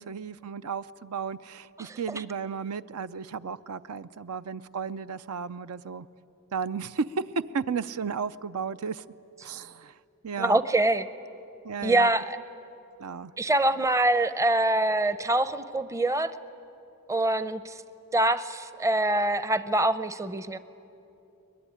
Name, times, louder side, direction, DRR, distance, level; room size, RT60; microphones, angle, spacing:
voice 1, 0.0-6.1 6.5-7.2 7.5-9.0 9.4-10.0 10.2-10.6 11.6-12.1 13.0-13.3, right 6 dB, 80° right, 14 dB, 0.5 m, -34 dB
voice 2, 1.8-2.2 10.4-11.1 11.8-12.4 13.4-16.3 17.1-17.7 18.1-20.6, right 1 dB, 15° right, 13 dB, 0.6 m, -25 dB
22.5 x 21.0 x 10.0 m, 2.8 s
head